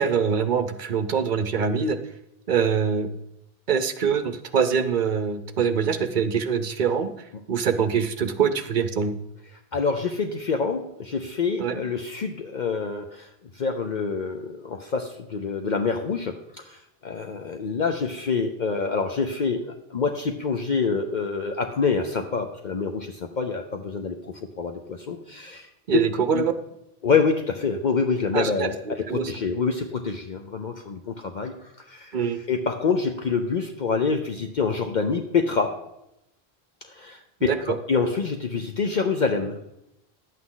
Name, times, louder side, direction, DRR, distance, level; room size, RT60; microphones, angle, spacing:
voice 1, 0.0-2.0 2.5-3.1 3.7-7.1 7.5-9.2 11.6-11.8 25.9-26.5 28.3-29.3 32.1-32.4 37.4-37.8, right 6 dB, 55° right, 10 dB, 0.8 m, -24 dB
voice 2, 9.7-25.7 26.3-26.4 27.0-32.2 32.5-35.8 36.8-39.6, left 5 dB, 50° left, 4 dB, 0.7 m, -26 dB
11.0 x 8.4 x 3.8 m, 0.83 s
omnidirectional pair, 1.1 m